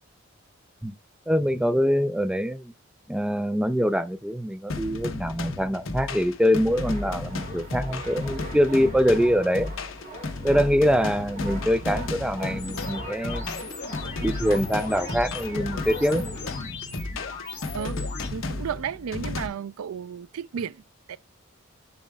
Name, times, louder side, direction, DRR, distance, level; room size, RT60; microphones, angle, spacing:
voice 1, 1.3-2.7 3.1-9.7 10.4-13.5 14.2-16.2, equal, 5° right, 0.3 m, -24 dB
sound 1, 4.7-19.5, left 2 dB, 65° left, 0.8 m, -34 dB
sound 2, 6.7-16.5, right 1 dB, 45° right, 3.0 m, -41 dB
sound 3, 12.6-18.3, left 4 dB, 50° left, 3.3 m, -38 dB
voice 2, 18.3-21.2, right 8 dB, 90° right, 0.4 m, -33 dB
7.0 x 6.4 x 2.2 m
head